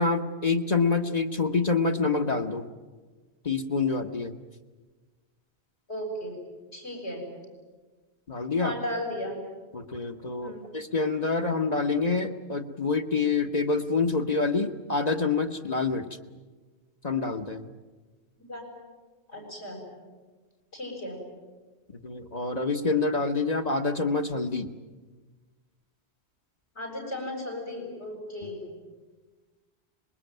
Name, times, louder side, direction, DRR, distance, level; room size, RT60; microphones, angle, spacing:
voice 1, 0.0-2.7 3.4-4.3 8.3-8.7 9.7-16.1 17.0-17.7 22.0-24.7, left 4 dB, 40° left, 4 dB, 1.2 m, -27 dB
voice 2, 5.9-6.4 6.7-7.2 8.6-9.4 10.4-10.7 18.5-18.6 19.3-19.8 20.7-21.2 26.7-28.7, left 1 dB, 90° left, 1 dB, 7.8 m, -35 dB
26.0 x 21.0 x 9.2 m, 1.3 s
omnidirectional pair, 1.1 m